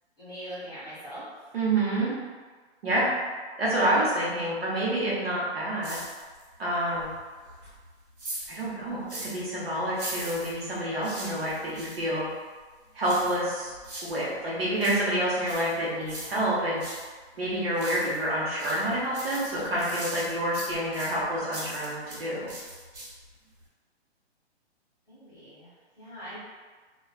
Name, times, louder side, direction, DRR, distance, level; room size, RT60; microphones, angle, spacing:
voice 1, 0.2-1.3 25.1-26.4, equal, 5° left, -24 dB, 0.6 m, -42 dB
voice 2, 1.5-2.1 2.8-3.1 3.6-6.0 6.6-7.1 8.5-12.3 12.9-13.7 14.0-16.8 17.4-22.5, right 1 dB, 60° right, -6 dB, 1.0 m, -28 dB
sound 1, 5.8-6.6 6.9-9.5 9.9-12.0 13.0-14.2 14.6-17.1 17.4-18.3 18.6-22.2 22.5-23.3 23.6-23.7, right 1 dB, 75° right, 1.2 m, -41 dB
2.4 x 2.3 x 2.3 m, 1.4 s
hypercardioid pair, 180°, 34 cm